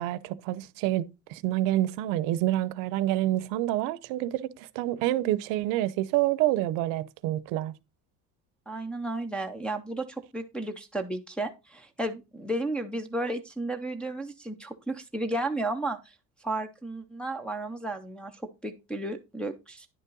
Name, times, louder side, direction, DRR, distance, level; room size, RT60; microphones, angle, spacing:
voice 1, 0.0-7.8, right 14 dB, 75° right, 0.7 m, -28 dB
voice 2, 8.7-16.0 16.4-19.9, right 2 dB, 5° left, 0.5 m, -33 dB
10.0 x 5.5 x 3.8 m
cardioid pair, 175°, 33 cm